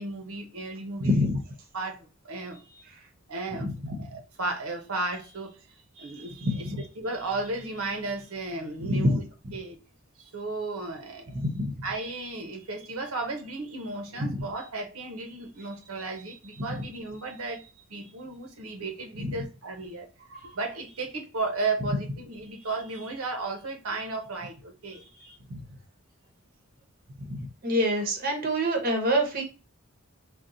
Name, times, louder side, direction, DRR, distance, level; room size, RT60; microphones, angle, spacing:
voice 1, 0.0-1.2 1.7-2.8 3.3-5.6 6.0-9.2 9.5-9.8 10.2-11.2 11.8-20.1 20.4-25.4, right 3 dB, 85° right, 0.8 m, -34 dB
voice 2, 1.0-1.4 3.6-3.7 6.4-6.6 8.9-9.2 11.4-11.7 14.2-14.3 16.7-16.8 19.2-19.3 20.3-20.5 25.5-25.6 27.3-29.4, equal, 45° right, 0.8 m, -26 dB
3.7 x 2.3 x 2.5 m
head